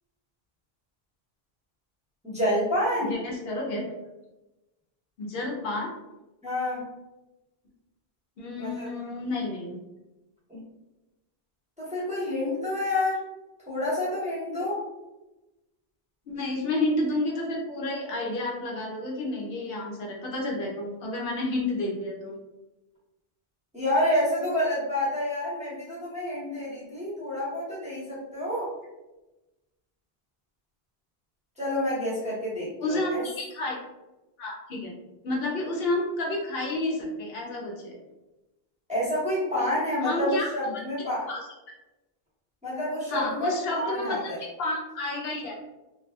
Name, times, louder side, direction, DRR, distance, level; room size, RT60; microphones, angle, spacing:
voice 1, 2.2-3.2 6.4-6.9 8.6-8.9 10.5-10.6 11.8-13.2 13.7-14.8 23.7-28.7 31.6-33.2 38.9-41.3 42.6-44.4, left 1 dB, 5° right, -9 dB, 0.8 m, -28 dB
voice 2, 3.1-3.8 5.2-5.9 8.4-9.8 16.3-22.3 32.8-33.8 34.4-34.9 35.2-38.0 40.0-40.5 41.3-41.4 43.1-44.3 44.6-45.6, left 2 dB, 75° left, -1 dB, 0.8 m, -30 dB
2.6 x 2.2 x 2.3 m, 1.0 s
omnidirectional pair, 1.0 m